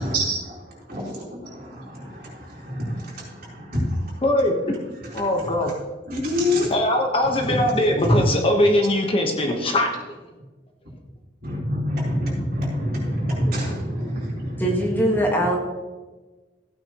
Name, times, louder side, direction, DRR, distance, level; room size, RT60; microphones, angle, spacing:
voice 1, 0.0-4.2 6.1-6.7 7.5-7.6 8.0-8.2 11.4-14.9, equal, 55° right, -5 dB, 4.0 m, -26 dB
voice 2, 4.2-4.5 5.1-5.7 6.7-9.9, left 1 dB, 30° left, 2 dB, 1.2 m, -21 dB
voice 3, 14.6-15.6, equal, 10° left, -1 dB, 1.6 m, -21 dB
15.5 x 9.2 x 3.0 m, 1.2 s
head